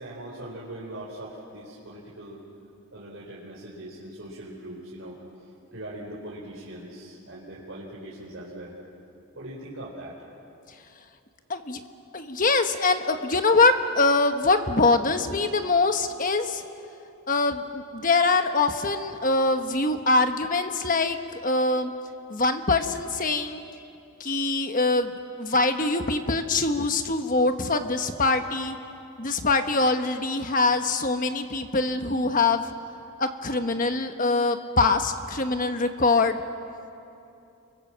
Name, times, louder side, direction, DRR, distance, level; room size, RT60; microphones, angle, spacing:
voice 1, 0.0-2.4 2.9-5.2 5.7-8.7 9.3-10.2, right 1 dB, 60° right, -6 dB, 4.2 m, -40 dB
voice 2, 12.1-16.6 17.3-21.9 22.3-23.6 24.2-25.1 25.4-28.8 29.2-32.6 33.2-36.4, left 3 dB, 40° left, 7 dB, 1.3 m, -23 dB
30.0 x 24.0 x 7.5 m, 2.7 s
head